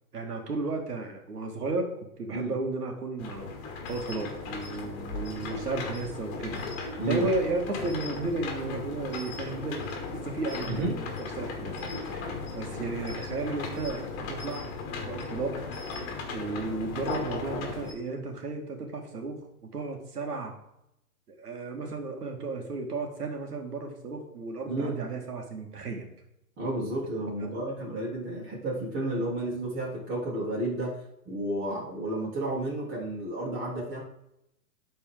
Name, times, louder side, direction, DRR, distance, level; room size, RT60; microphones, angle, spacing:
voice 1, 0.1-1.9 2.2-3.5 3.9-6.6 7.1-9.9 10.1-14.7 15.1-15.6 16.3-19.4 19.7-20.5 21.3-26.1 27.4-27.5, right 3 dB, 90° right, 2 dB, 2.2 m, -34 dB
sound 1, 3.2-17.9, left 4 dB, 40° left, 1.8 m, -36 dB
voice 2, 10.7-11.0 24.7-24.9 26.6-31.0 31.2-34.0, right 1 dB, 25° right, -4 dB, 3.3 m, -31 dB
12.0 x 4.4 x 3.8 m, 0.83 s
hypercardioid pair, 135°, 45 cm